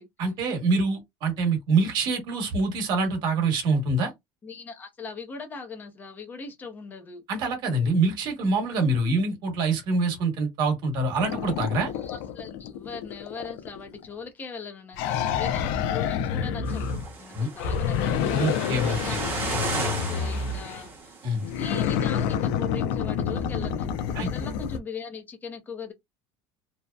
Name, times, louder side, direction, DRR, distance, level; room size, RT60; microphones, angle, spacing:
voice 1, 0.2-4.1 7.3-11.9 17.3-17.5 18.3-19.2 21.2-21.4 24.1-24.3, right 3 dB, 45° right, 1.1 m, -25 dB
voice 2, 4.4-7.2 11.9-16.9 17.2-18.1 18.6-21.2 21.6-25.9, left 5 dB, 20° left, 0.5 m, -40 dB
sound 1, 11.2-14.0 14.9-17.2 17.6-20.9 21.4-24.8, left 8 dB, 75° left, 0.4 m, -28 dB
sound 2, 16.7-21.8, right 4 dB, 20° right, 0.8 m, -35 dB
2.7 x 2.0 x 2.2 m
cardioid pair, 165°, 10 cm